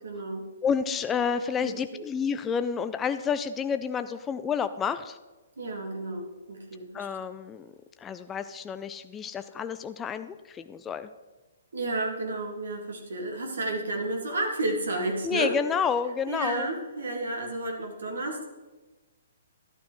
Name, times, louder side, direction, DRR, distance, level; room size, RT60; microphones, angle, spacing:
voice 1, 0.0-0.5 1.6-2.0 5.6-7.1 11.7-15.5 16.3-18.5, right 2 dB, 75° right, 2 dB, 1.8 m, -32 dB
voice 2, 0.6-5.2 6.9-7.7 8.0-11.1 15.2-16.7, left 6 dB, 15° left, 10 dB, 0.4 m, -30 dB
12.0 x 11.0 x 3.1 m, 1.2 s
hypercardioid pair, 135°, 0 cm